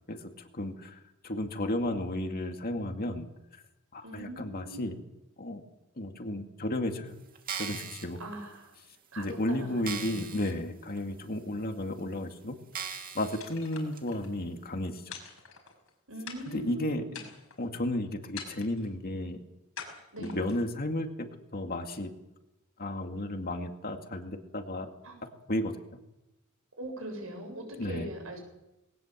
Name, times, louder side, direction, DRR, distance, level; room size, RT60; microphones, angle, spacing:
voice 1, 0.1-3.3 3.9-5.0 5.4-5.6 6.0-7.2 7.6-8.2 9.2-12.6 13.1-15.0 16.5-17.1 17.6-19.4 20.2-22.1 22.8-24.9 25.5-25.8 27.8-28.1, left 1 dB, 45° left, 5 dB, 2.3 m, -33 dB
voice 2, 4.0-4.8 8.2-8.7 9.1-10.5 16.1-17.2 20.1-20.4 25.0-25.2 26.8-28.4, right 1 dB, 75° right, 4 dB, 7.7 m, -41 dB
sound 1, 7.3-8.0 8.7-8.8 9.3-9.4 9.8-10.5 11.0-11.1 11.8-11.9 12.7-13.4 14.0-14.1, right 6 dB, 45° right, 2.6 m, -38 dB
sound 2, 13.4-14.3 15.1-15.9 16.3-16.7 17.1-17.7 18.4-18.9 19.8-20.7, left 6 dB, 90° left, 5.6 m, -45 dB
21.0 x 18.5 x 7.5 m, 0.91 s
head